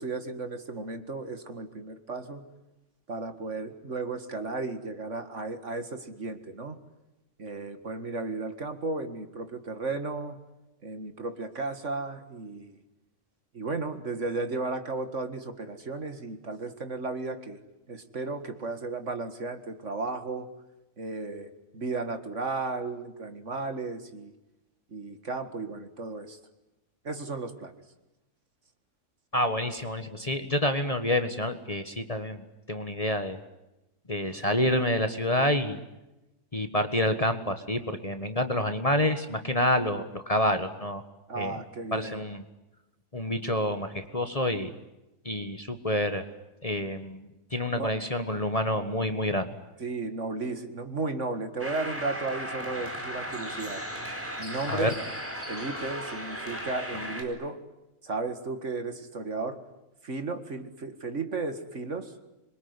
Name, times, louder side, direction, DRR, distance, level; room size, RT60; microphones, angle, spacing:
voice 1, 0.0-2.4 3.1-6.8 7.4-10.4 10.8-12.8 13.5-17.6 17.9-20.5 21.0-24.3 24.9-26.4 27.0-27.7 41.3-42.2 47.7-48.0 49.8-53.8 54.4-55.0 55.5-57.6 58.0-59.6 60.0-62.1, right 3 dB, 50° right, 9 dB, 2.2 m, -34 dB
voice 2, 29.3-32.4 32.7-33.4 34.1-35.8 36.5-41.0 41.3-41.5 41.9-42.4 43.1-44.7 45.2-46.2 46.6-49.5 54.7-54.9, left 1 dB, 25° left, 8 dB, 1.5 m, -28 dB
sound 1, 51.6-57.2, equal, 10° right, 4.6 m, -36 dB
26.0 x 23.0 x 9.7 m, 0.97 s
omnidirectional pair, 1.6 m